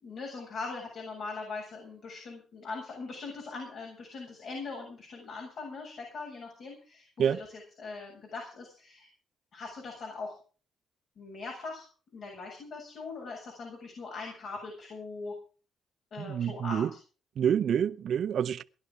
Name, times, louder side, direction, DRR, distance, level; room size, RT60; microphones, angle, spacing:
voice 1, 0.0-9.1 9.5-10.3 11.2-11.9 12.1-15.3 16.1-17.0, left 3 dB, 60° left, 7.5 m, -41 dB
voice 2, 16.2-16.9 17.4-18.6, right 8 dB, 65° right, 0.7 m, -27 dB
19.0 x 11.5 x 5.1 m
cardioid pair, 90°, 0 cm